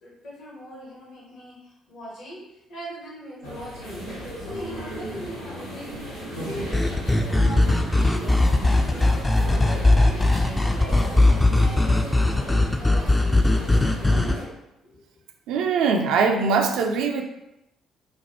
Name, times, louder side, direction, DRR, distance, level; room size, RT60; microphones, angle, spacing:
voice 1, 0.0-5.9 6.3-6.7 7.0-9.1 9.5-14.5 14.8-15.0, equal, 55° left, -5 dB, 1.0 m, -41 dB
sound 1, 3.4-14.4, equal, 85° left, 0.9 m, -35 dB
sound 2, 6.7-14.4, left 2 dB, 15° left, 0.3 m, -19 dB
voice 2, 15.5-17.2, right 5 dB, 60° right, 3 dB, 0.3 m, -22 dB
4.1 x 2.2 x 3.0 m, 0.89 s
figure-of-eight pair, 45°, 0 cm